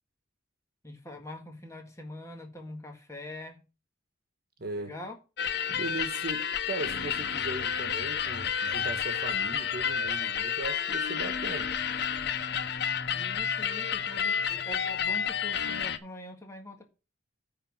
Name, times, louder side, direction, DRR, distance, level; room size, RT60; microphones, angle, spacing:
voice 1, 0.8-3.6 4.8-5.2 13.1-16.8, left 1 dB, 15° left, 1.7 m, -43 dB
voice 2, 4.6-5.0 5.7-11.8, right 2 dB, 55° right, 1.3 m, -38 dB
sound 1, 5.4-16.0, left 7 dB, 60° left, 0.7 m, -30 dB
9.7 x 4.0 x 7.3 m
head